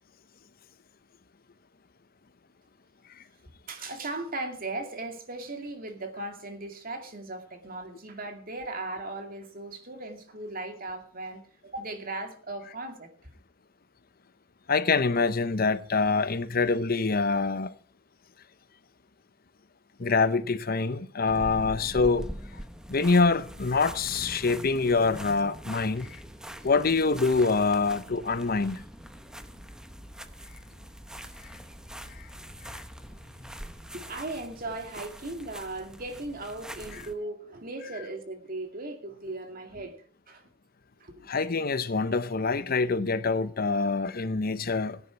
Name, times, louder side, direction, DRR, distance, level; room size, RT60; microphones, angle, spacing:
voice 1, 3.7-13.1 33.9-40.5 41.0-41.3, right 2 dB, 50° right, 2.4 m, -37 dB
voice 2, 14.7-17.7 20.0-22.3 22.9-26.2 26.6-28.8 32.1-32.3 32.6-32.8 41.3-45.0, left 4 dB, 50° left, 0.8 m, -25 dB
sound 1, 21.3-37.1, equal, 5° right, 0.9 m, -43 dB
17.0 x 10.0 x 4.6 m
head